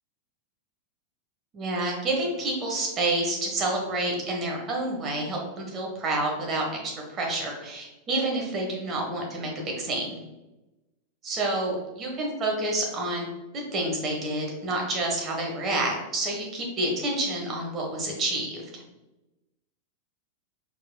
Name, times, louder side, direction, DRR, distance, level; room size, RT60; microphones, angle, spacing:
voice 1, 1.5-6.6 7.1-10.2 11.2-13.3 13.5-18.8, right 2 dB, 30° right, -1 dB, 1.3 m, -28 dB
4.5 x 4.3 x 2.3 m, 1.0 s
figure-of-eight pair, 90°, 0 cm